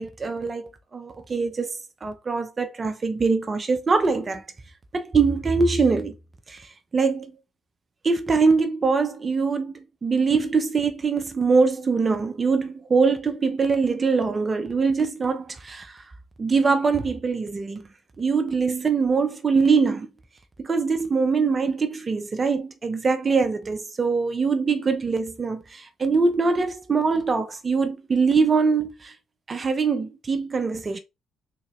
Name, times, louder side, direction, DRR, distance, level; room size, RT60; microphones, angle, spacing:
voice 1, 0.0-4.4 4.9-6.2 6.5-7.3 8.0-16.0 16.4-17.9 18.2-20.1 20.6-29.1 29.5-31.0, right 4 dB, 40° right, 0.7 m, -23 dB
3.7 x 2.6 x 3.1 m
hypercardioid pair, 50°, 0 cm